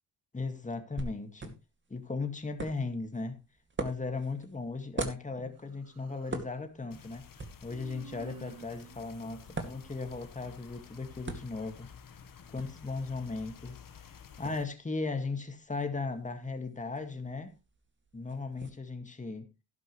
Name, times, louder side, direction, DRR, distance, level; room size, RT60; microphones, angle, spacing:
voice 1, 0.3-1.5 1.9-3.4 3.8-7.3 7.6-11.9 12.5-17.5 18.1-19.5, left 3 dB, 15° left, 2.1 m, -37 dB
clipboard slaps, 1.0-18.7, right 3 dB, 25° right, 2.3 m, -45 dB
Human voice, 5.6-6.5 7.7-10.4, right 10 dB, 55° right, 0.9 m, -53 dB
sound 1, 6.9-14.6, left 7 dB, 50° left, 1.5 m, -52 dB
12.0 x 11.5 x 3.2 m
cardioid pair, 85°, 42 cm